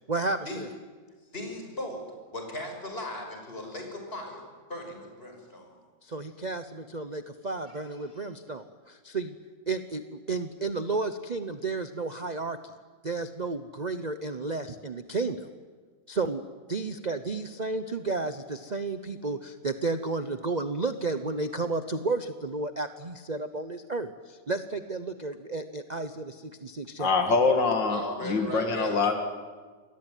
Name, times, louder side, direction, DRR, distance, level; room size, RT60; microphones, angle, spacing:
voice 1, 0.1-0.7 6.0-9.3 9.7-12.7 13.0-15.5 16.1-16.4 16.7-27.1, right 3 dB, 35° right, 9 dB, 0.8 m, -32 dB
voice 2, 1.3-2.0 2.3-4.4 4.7-5.8 7.6-8.2 27.9-29.0, left 1 dB, 30° left, 3 dB, 6.2 m, -37 dB
voice 3, 27.0-29.1, left 4 dB, 85° left, 5 dB, 2.8 m, -24 dB
27.5 x 22.0 x 9.3 m, 1.5 s
omnidirectional pair, 1.9 m